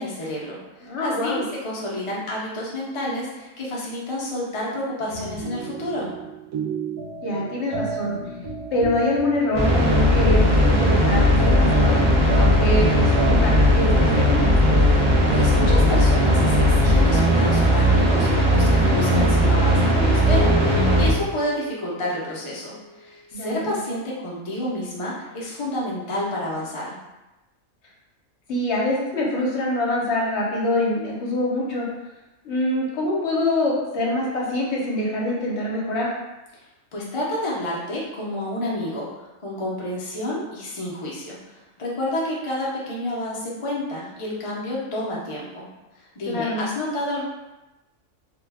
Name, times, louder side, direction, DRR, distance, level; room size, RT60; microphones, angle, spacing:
voice 1, 0.0-6.1 14.9-27.0 36.5-36.6 36.9-45.7 45.9-47.2, left 1 dB, 45° left, -5 dB, 0.4 m, -30 dB
voice 2, 0.8-1.4 7.2-8.2 8.7-14.5 23.3-23.8 28.5-31.9 32.4-36.1 46.3-46.6, left 1 dB, 60° left, -3 dB, 0.9 m, -25 dB
sound 1, 5.1-17.4, right 3 dB, 80° right, 1.2 m, -33 dB
sound 2, 9.5-21.1, equal, 30° right, 0.6 m, -17 dB
Keyboard (musical), 20.3-23.2, left 3 dB, 10° left, 0.7 m, -33 dB
2.7 x 2.2 x 3.3 m, 1.0 s
omnidirectional pair, 1.4 m